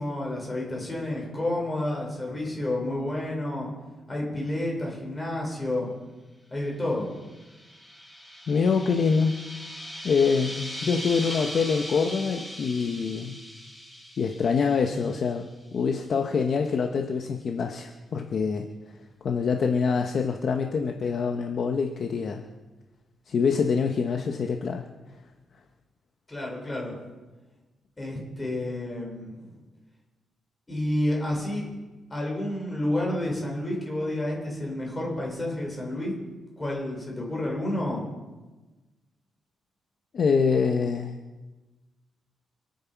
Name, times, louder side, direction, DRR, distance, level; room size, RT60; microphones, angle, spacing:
voice 1, 0.0-3.7 4.1-5.9 6.5-7.1 26.3-27.0 28.0-29.5 30.7-31.6 32.1-36.1 36.6-38.1, left 1 dB, 15° left, -2 dB, 4.8 m, -30 dB
sound 1, 7.1-15.4, equal, 5° right, 6.0 m, -39 dB
voice 2, 8.5-9.4 10.0-13.4 14.2-15.4 15.7-18.7 19.2-22.5 23.3-24.9 40.1-41.1, left 5 dB, 45° left, 4 dB, 1.0 m, -25 dB
27.0 x 9.6 x 4.7 m, 1.2 s
wide cardioid pair, 165°, 0 cm